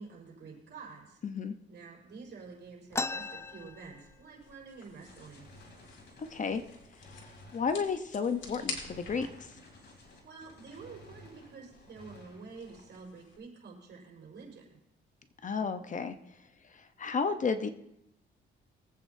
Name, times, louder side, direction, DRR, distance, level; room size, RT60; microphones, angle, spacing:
voice 1, 0.0-1.2 1.7-5.5 10.2-14.8, right 4 dB, 60° right, -2 dB, 4.7 m, -48 dB
voice 2, 1.2-1.5 6.3-6.6 7.5-9.5 15.4-16.2 17.0-17.7, left 5 dB, 40° left, 9 dB, 0.8 m, -32 dB
sound 1, 2.1-13.4, left 4 dB, 70° left, 2.2 m, -49 dB
sound 2, 2.9-4.5 4.9-5.0 5.2-5.9 6.5-6.6 7.3-7.5 8.0-8.4, left 3 dB, 15° left, 0.3 m, -37 dB
Gunshot gunfire, 5.0-13.0, left 1 dB, 55° left, 3.1 m, -55 dB
23.5 x 8.3 x 2.7 m, 0.83 s
cardioid pair, 90°, 20 cm